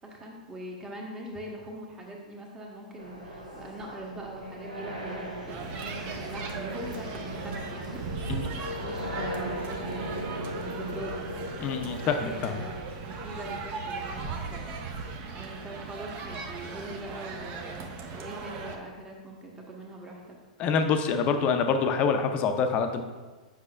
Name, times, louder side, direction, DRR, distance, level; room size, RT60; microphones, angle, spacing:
voice 1, 0.0-8.0 8.7-11.3 12.2-20.4, right 1 dB, 15° right, 0 dB, 1.1 m, -42 dB
sound 1, 3.0-12.8, right 1 dB, 90° right, 1.3 m, -39 dB
sound 2, 5.5-18.7, right 4 dB, 35° right, 0.7 m, -38 dB
sound 3, 7.9-15.5, left 3 dB, 85° left, 0.6 m, -43 dB
voice 2, 11.6-12.6 20.6-23.0, left 5 dB, 30° left, 6 dB, 0.5 m, -26 dB
7.4 x 5.6 x 2.4 m, 1.3 s
figure-of-eight pair, 105°, 4 cm